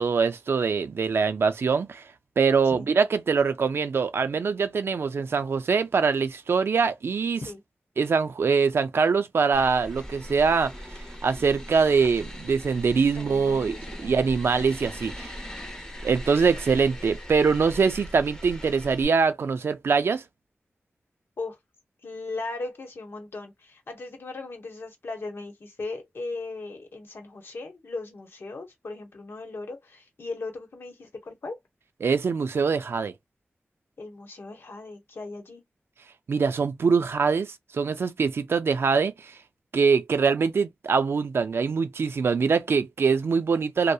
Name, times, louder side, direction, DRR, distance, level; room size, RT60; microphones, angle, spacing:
voice 1, 0.0-2.0 2.4-7.4 8.0-10.7 11.2-15.3 16.0-20.2 32.0-33.1 36.3-39.3 39.7-43.9, right 5 dB, 70° right, 0.4 m, -23 dB
sound 1, 9.5-19.0, equal, 15° left, 0.8 m, -39 dB
voice 2, 13.2-14.4 16.8-17.0 21.4-21.6 22.0-31.6 34.0-35.6, left 3 dB, 65° left, 0.9 m, -38 dB
2.7 x 2.1 x 2.2 m
wide cardioid pair, 110°, 4 cm